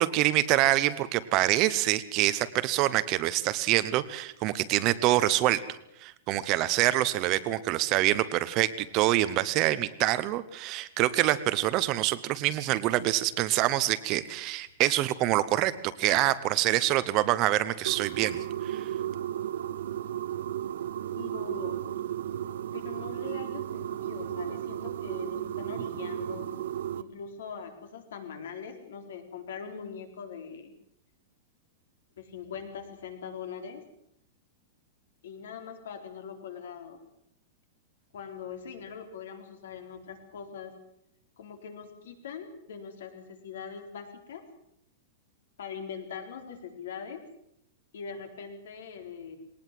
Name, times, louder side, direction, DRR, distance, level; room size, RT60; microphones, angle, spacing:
voice 1, 0.0-15.7 16.0-18.9, right 15 dB, 25° right, 14 dB, 0.8 m, -26 dB
sound 1, 17.9-27.0, right 11 dB, 65° right, 0.9 m, -34 dB
voice 2, 21.2-21.8 22.7-26.5 27.0-30.7 32.2-33.8 35.2-37.0 38.1-40.7 41.4-44.4 45.6-47.2 47.9-49.4, left 6 dB, 75° left, 6 dB, 4.1 m, -42 dB
20.5 x 19.0 x 7.6 m, 0.75 s
supercardioid pair, 180°, 0 cm